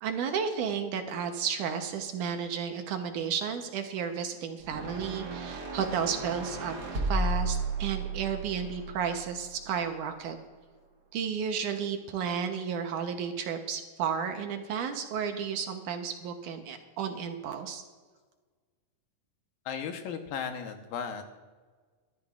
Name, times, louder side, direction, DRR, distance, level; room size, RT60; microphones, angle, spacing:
voice 1, 0.0-10.3 11.1-17.8, right 7 dB, 70° right, 5 dB, 2.3 m, -33 dB
sound 1, 4.6-9.9, right 2 dB, 40° right, 1.6 m, -34 dB
voice 2, 19.7-21.2, left 7 dB, 90° left, 5 dB, 2.8 m, -35 dB
24.0 x 11.5 x 2.5 m, 1.4 s
omnidirectional pair, 4.0 m